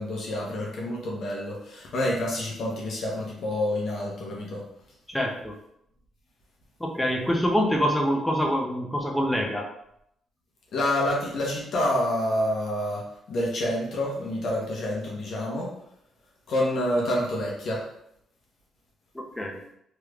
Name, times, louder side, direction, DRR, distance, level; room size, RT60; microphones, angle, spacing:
voice 1, 0.0-4.6 10.7-15.7 16.5-17.9, left 1 dB, 65° left, -3 dB, 0.9 m, -28 dB
voice 2, 5.1-5.6 6.8-9.7 19.1-19.6, equal, 5° left, 0 dB, 0.6 m, -25 dB
3.2 x 3.1 x 2.4 m, 0.74 s
cardioid pair, 90°, 0 cm